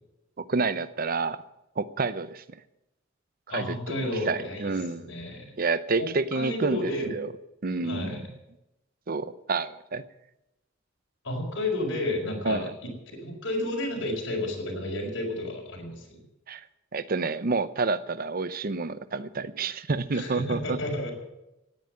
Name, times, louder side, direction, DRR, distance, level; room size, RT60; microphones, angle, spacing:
voice 1, 0.4-1.4 1.8-2.4 3.5-3.9 4.2-5.1 5.6-7.3 7.6-8.3 9.1-10.0 12.4-12.7 16.5-16.6 16.9-20.8, right 4 dB, 50° right, 15 dB, 0.7 m, -29 dB
voice 2, 3.5-4.7 5.0-5.5 6.0-7.1 7.8-8.2 11.2-16.2 20.1-21.1, left 1 dB, 85° left, -2 dB, 4.6 m, -31 dB
17.0 x 9.4 x 7.7 m, 0.91 s
head